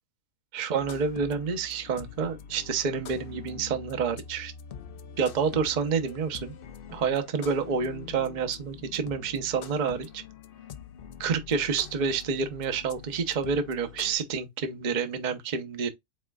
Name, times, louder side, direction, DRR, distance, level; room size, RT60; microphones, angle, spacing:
voice 1, 0.5-4.5 5.2-6.5 6.9-10.2 11.2-15.9, right 5 dB, 40° right, 0.8 m, -28 dB
sound 1, 0.8-14.2, left 7 dB, 65° left, 0.5 m, -45 dB
5.3 x 4.3 x 2.3 m
omnidirectional pair, 1.5 m